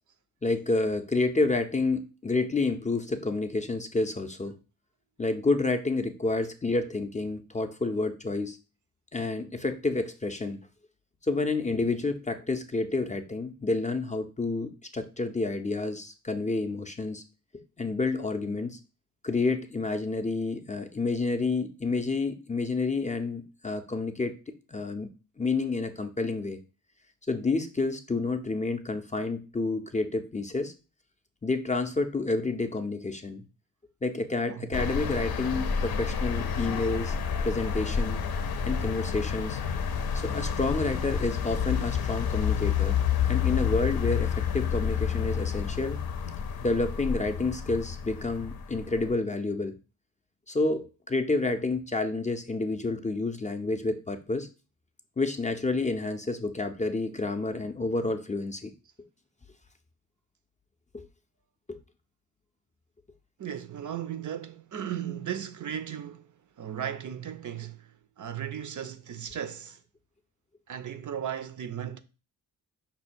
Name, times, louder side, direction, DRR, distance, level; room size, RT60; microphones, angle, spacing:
voice 1, 0.4-4.5 5.2-8.6 9.1-10.6 11.3-17.2 17.8-18.8 19.2-24.4 24.7-25.1 25.4-26.6 27.3-30.7 31.4-33.4 34.0-37.2 37.4-38.2 38.6-39.6 40.1-43.0 43.2-46.0 46.6-49.7 50.5-54.5 55.2-58.7 60.9-61.0 61.7-61.8, left 3 dB, 20° left, 0.4 m, -29 dB
sound 1, 34.7-49.1, left 7 dB, 75° left, 0.6 m, -29 dB
voice 2, 63.4-66.3 66.6-69.8 70.7-72.0, right 9 dB, 55° right, 0.5 m, -36 dB
5.4 x 2.2 x 4.2 m
cardioid pair, 95°, 37 cm